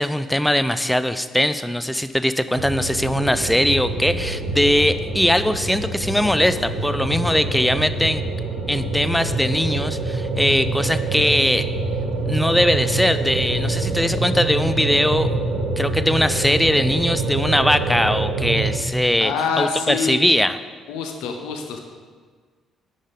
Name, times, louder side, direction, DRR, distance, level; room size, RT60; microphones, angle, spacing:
voice 1, 0.0-8.2 8.7-11.7 12.3-15.3 15.8-20.6, left 1 dB, 5° left, 13 dB, 0.4 m, -20 dB
sound 1, 2.5-18.8, right 2 dB, 65° right, 1.2 m, -25 dB
voice 2, 19.2-20.2 20.9-21.8, left 6 dB, 65° left, 4 dB, 0.6 m, -25 dB
10.0 x 5.1 x 3.8 m, 1.5 s
figure-of-eight pair, 45°, 0 cm